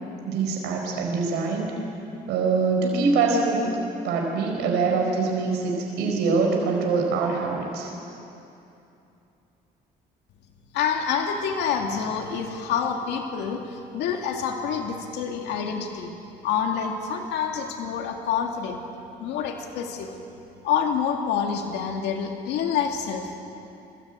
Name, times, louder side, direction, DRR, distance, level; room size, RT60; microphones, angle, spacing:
voice 1, 0.2-1.7 2.3-3.8 4.0-7.9, right 4 dB, 85° right, 1 dB, 4.5 m, -24 dB
voice 2, 10.7-16.1 16.4-18.8 19.2-20.2 20.6-23.4, left 7 dB, 85° left, 3 dB, 2.2 m, -27 dB
24.5 x 21.0 x 9.0 m, 2.8 s
cardioid pair, 110°, 17 cm